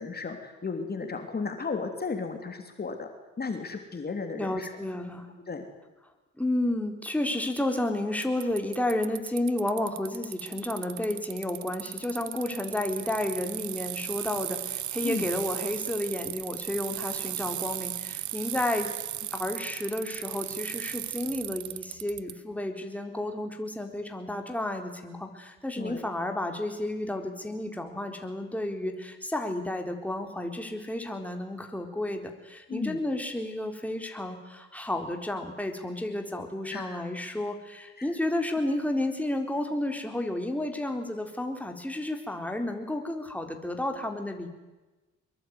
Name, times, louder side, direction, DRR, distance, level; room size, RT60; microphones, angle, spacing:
voice 1, 0.0-3.1 3.4-4.7 5.5-5.6 15.0-15.3 17.1-17.2 25.8-26.0 32.7-33.0 36.7-37.0 38.0-38.1, left 4 dB, 30° left, 5 dB, 3.1 m, -34 dB
voice 2, 4.4-5.3 6.4-18.9 19.3-44.5, left 1 dB, 5° left, 4 dB, 3.9 m, -31 dB
Bicycle, 8.2-22.3, right 14 dB, 75° right, 1.0 m, -36 dB
24.0 x 22.0 x 9.6 m, 1.1 s
cardioid pair, 90°, 30 cm